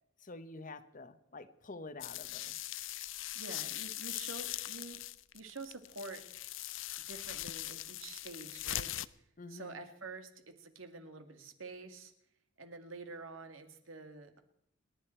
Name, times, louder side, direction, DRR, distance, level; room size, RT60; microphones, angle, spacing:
voice 1, 0.2-2.6 9.4-9.8, left 3 dB, 40° left, 12 dB, 1.0 m, -48 dB
sound 1, 2.0-9.1, left 14 dB, 70° left, 0.6 m, -41 dB
voice 2, 3.3-5.0 5.3-6.2 7.1-8.9 9.5-12.1 12.6-14.4, right 3 dB, 85° right, 6 dB, 2.2 m, -47 dB
29.5 x 10.5 x 4.5 m, 0.74 s
head